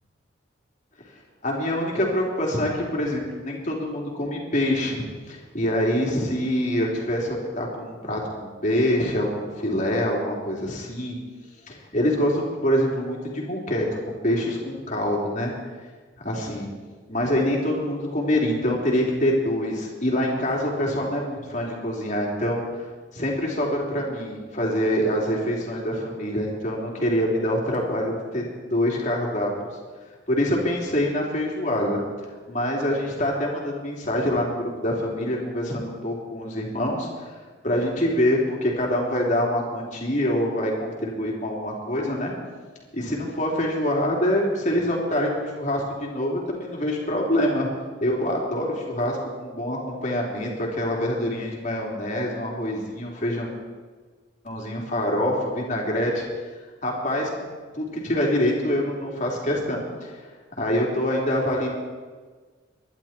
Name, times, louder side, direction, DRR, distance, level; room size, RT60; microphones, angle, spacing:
voice 1, 1.4-11.2 11.7-13.9 14.2-15.5 16.2-16.7 17.1-22.6 23.1-28.4 28.7-29.5 30.3-37.3 37.6-42.3 42.9-47.7 48.0-53.5 54.4-56.2 56.8-57.5 57.7-60.3 60.6-61.7, left 1 dB, 40° left, -2 dB, 3.6 m, -25 dB
23.5 x 11.5 x 4.5 m, 1.4 s
head